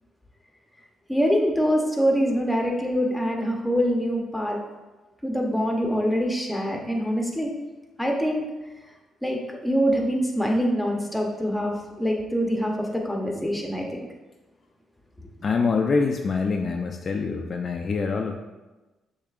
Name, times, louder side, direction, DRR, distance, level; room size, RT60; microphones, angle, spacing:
voice 1, 1.1-4.6 5.2-7.5 8.0-8.4 9.2-14.1 15.2-15.3, equal, 5° left, 1 dB, 0.8 m, -24 dB
voice 2, 15.4-18.4, left 4 dB, 45° left, 3 dB, 0.3 m, -25 dB
6.6 x 2.8 x 2.4 m, 1.1 s
cardioid pair, 90°, 0 cm